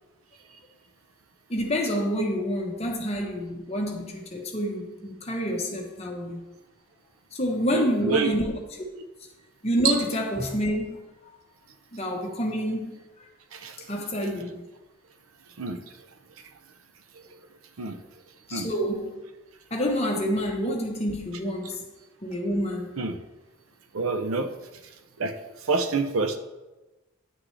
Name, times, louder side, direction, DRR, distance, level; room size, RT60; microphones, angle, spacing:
voice 1, 1.5-6.4 7.3-8.5 9.6-11.0 11.9-13.0 13.9-14.6 18.5-19.1 19.7-21.8 22.2-23.0, equal, 30° left, 1 dB, 1.1 m, -28 dB
voice 2, 7.7-8.3 9.0-9.1 9.8-9.9 13.5-13.9 15.6-15.8 17.1-17.2 17.8-18.0 18.5-18.7 23.0-23.2 23.9-24.5 25.2-25.3 25.6-26.4, right 4 dB, 90° right, 9 dB, 0.7 m, -27 dB
9.5 x 6.0 x 3.3 m, 1.1 s
head